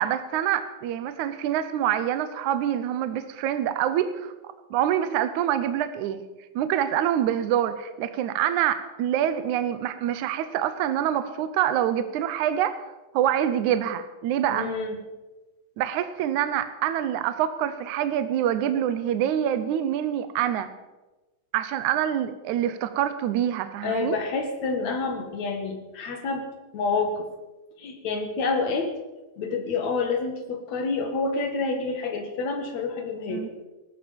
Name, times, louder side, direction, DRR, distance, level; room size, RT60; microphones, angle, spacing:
voice 1, 0.0-4.3 4.7-6.2 6.6-12.8 13.1-14.7 15.8-20.7 21.5-24.2 33.3-33.5, right 10 dB, 75° right, 11 dB, 1.9 m, -26 dB
voice 2, 14.5-15.0 23.8-26.5 26.7-27.3 27.8-28.9 29.4-33.4, left 4 dB, 55° left, 5 dB, 2.9 m, -28 dB
18.5 x 13.5 x 5.3 m, 1.1 s
omnidirectional pair, 4.1 m